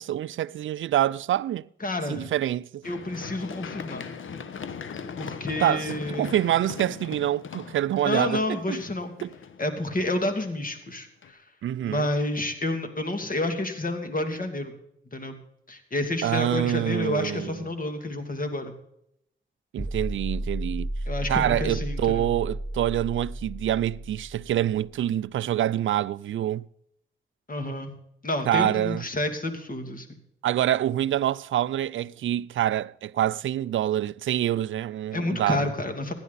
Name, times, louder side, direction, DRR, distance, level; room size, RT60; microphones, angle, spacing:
voice 1, 0.0-1.7 2.1-2.8 5.6-8.8 9.2-9.3 11.6-12.1 16.2-17.6 19.7-20.9 21.3-26.7 28.5-29.0 30.4-35.7, right 12 dB, 75° right, 0.4 m, -26 dB
voice 2, 1.8-2.3 2.8-4.1 5.2-6.3 8.0-9.1 9.6-11.4 11.9-14.7 15.1-15.4 15.7-18.7 21.1-22.3 27.5-27.9 28.2-30.2 35.1-36.1, left 1 dB, 45° left, 2.6 m, -29 dB
Run, 2.8-10.7 11.2-11.3, left 6 dB, 75° left, 1.1 m, -39 dB
sound 1, 19.8-24.8, right 1 dB, 5° right, 0.7 m, -33 dB
16.5 x 10.5 x 4.1 m
cardioid pair, 50°, 20 cm